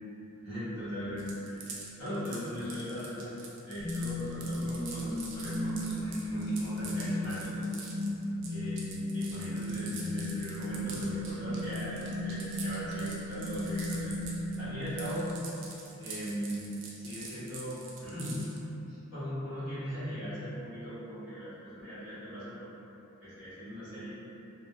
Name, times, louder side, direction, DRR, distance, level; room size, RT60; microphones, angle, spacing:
voice 1, 0.4-1.7 2.0-3.3 3.6-7.6 8.5-14.1 14.6-15.2 16.0-18.5 18.9-22.7 23.2-24.1, equal, 55° left, -17 dB, 1.5 m, -38 dB
sound 1, 1.2-14.6 14.8-18.6, right 4 dB, 55° right, 0.4 m, -45 dB
sound 2, 3.8-15.8, left 1 dB, 85° left, 0.9 m, -36 dB
2.7 x 2.4 x 2.4 m, 3.0 s
head